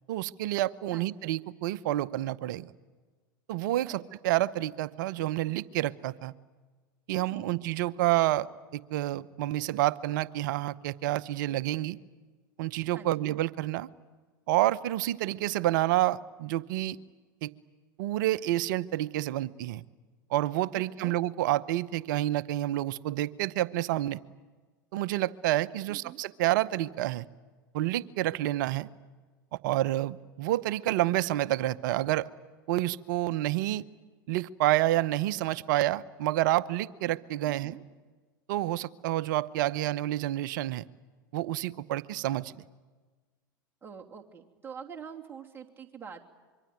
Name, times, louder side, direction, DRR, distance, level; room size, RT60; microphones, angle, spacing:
voice 1, 0.1-2.7 3.5-6.3 7.1-12.0 12.6-13.9 14.5-17.0 17.4-17.5 18.0-19.8 20.3-24.2 24.9-27.3 27.7-28.9 29.5-32.3 32.7-33.9 34.3-37.8 38.5-40.8 41.3-42.5, right 15 dB, 65° right, 17 dB, 0.8 m, -29 dB
voice 2, 0.9-1.3 3.9-4.0 7.1-7.5 12.9-13.1 20.9-21.2 25.9-26.2 37.4-37.8 43.8-46.2, right 7 dB, 20° right, 1 dB, 3.1 m, -45 dB
25.0 x 24.0 x 9.5 m, 1.4 s
hypercardioid pair, 90°, 11 cm